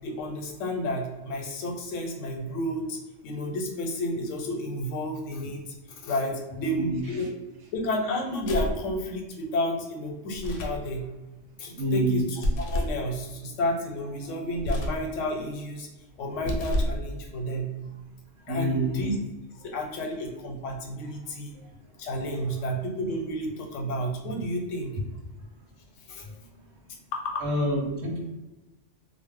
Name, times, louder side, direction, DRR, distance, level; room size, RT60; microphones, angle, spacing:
voice 1, 0.0-5.7 6.0-7.3 7.7-11.1 11.6-15.9 16.2-17.7 18.5-19.2 19.6-21.5 22.0-25.0 26.1-26.2 27.1-27.4, left 1 dB, 90° left, 1 dB, 1.0 m, -31 dB
voice 2, 6.5-7.0 11.8-12.2 18.4-19.0 27.4-28.3, right 1 dB, 85° right, 0 dB, 1.1 m, -27 dB
sound 1, 8.4-8.9 10.3-10.8 12.4-13.0 14.5-15.1 16.3-17.0, equal, 65° left, 0.8 m, -29 dB
2.6 x 2.1 x 3.4 m, 1.1 s
omnidirectional pair, 1.3 m